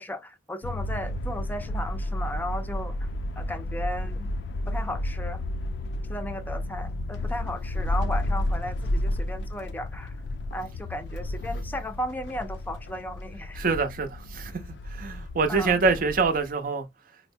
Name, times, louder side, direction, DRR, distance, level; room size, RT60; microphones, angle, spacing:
voice 1, 0.0-3.1 3.4-4.3 4.7-5.4 6.1-10.2 10.5-13.6 15.5-15.8, left 1 dB, 10° left, 0.4 m, -35 dB
sound 1, 0.6-16.5, left 1 dB, 75° left, 0.3 m, -32 dB
voice 2, 13.6-14.5 14.9-16.9, right 4 dB, 50° right, 0.6 m, -25 dB
4.4 x 2.1 x 2.6 m
head